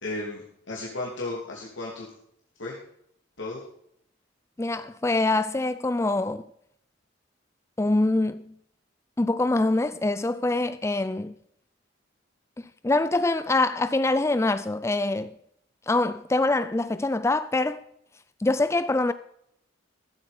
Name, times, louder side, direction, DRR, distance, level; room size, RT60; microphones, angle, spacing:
voice 1, 0.0-2.1 2.6-2.8 3.4-3.6, left 2 dB, 70° left, 3.0 m, -34 dB
voice 2, 4.6-6.4 7.8-8.4 9.2-11.3 12.8-15.3 15.9-17.8 18.4-19.1, left 2 dB, 15° left, 0.4 m, -24 dB
14.5 x 8.1 x 5.2 m
head